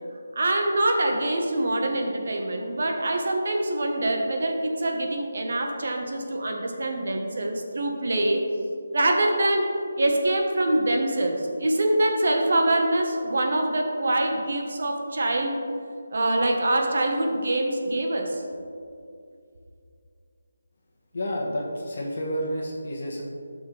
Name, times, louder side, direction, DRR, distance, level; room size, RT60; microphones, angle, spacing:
voice 1, 0.3-8.5 8.9-15.6 16.1-18.4, right 1 dB, 60° right, 2 dB, 1.1 m, -24 dB
voice 2, 21.1-23.2, equal, 55° left, -3 dB, 1.2 m, -30 dB
11.0 x 6.4 x 3.3 m, 2.4 s
figure-of-eight pair, 170°, 0 cm